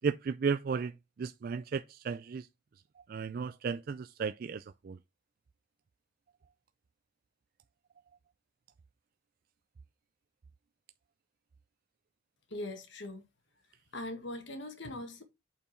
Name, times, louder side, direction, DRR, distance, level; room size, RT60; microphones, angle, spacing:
voice 1, 0.0-2.5 3.1-5.0, right 5 dB, 45° right, 0.3 m, -34 dB
voice 2, 12.5-13.3 13.9-15.2, left 1 dB, 60° left, 1.4 m, -41 dB
8.3 x 4.5 x 4.4 m
head